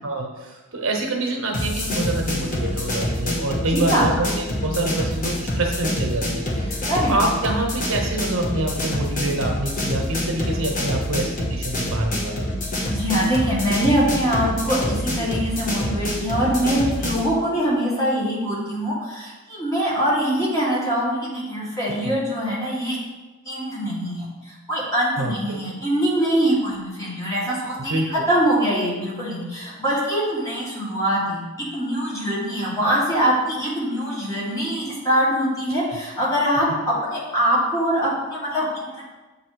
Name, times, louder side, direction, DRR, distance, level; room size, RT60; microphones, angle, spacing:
voice 1, 0.0-12.5 22.0-22.1 25.2-25.6 27.9-28.1, right 2 dB, 75° right, 1 dB, 1.0 m, -26 dB
sound 1, 1.5-17.3, left 1 dB, 40° left, 1.2 m, -26 dB
voice 2, 3.7-4.1 6.9-7.1 12.9-23.0 23.5-31.4 31.7-39.0, equal, 15° left, -7 dB, 1.7 m, -23 dB
7.5 x 2.9 x 4.6 m, 1.2 s
head